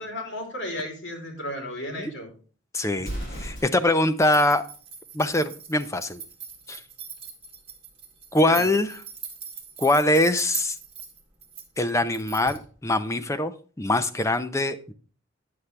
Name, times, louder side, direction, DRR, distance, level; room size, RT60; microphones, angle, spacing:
voice 1, 0.0-2.3 8.5-8.7, left 1 dB, 70° left, 2 dB, 3.1 m, -34 dB
voice 2, 2.7-3.1 3.4-4.6 5.1-6.2 6.7-6.8 8.3-8.9 9.8-10.7 11.8-13.5 13.8-14.9, left 1 dB, 15° left, 9 dB, 0.6 m, -23 dB
Explosion, 2.9-4.1, equal, 45° left, 4.9 m, -35 dB
sound 1, 4.2-12.7, right 7 dB, 30° right, 2.1 m, -41 dB
9.5 x 7.2 x 3.3 m, 0.39 s
head